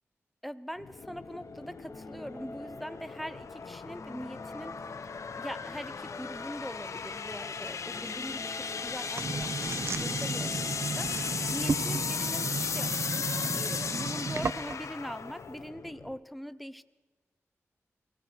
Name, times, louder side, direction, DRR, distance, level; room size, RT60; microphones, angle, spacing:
voice 1, 0.4-4.8 5.3-12.9 13.5-16.8, equal, ahead, 14 dB, 1.0 m, -42 dB
sound 1, 0.8-16.2, left 5 dB, 80° left, 1.1 m, -36 dB
sound 2, 1.0-11.3, left 1 dB, 30° left, 2.3 m, -48 dB
sound 3, 9.2-14.9, right 4 dB, 55° right, 0.9 m, -34 dB
23.5 x 18.0 x 6.3 m, 1.3 s
cardioid pair, 50°, 5 cm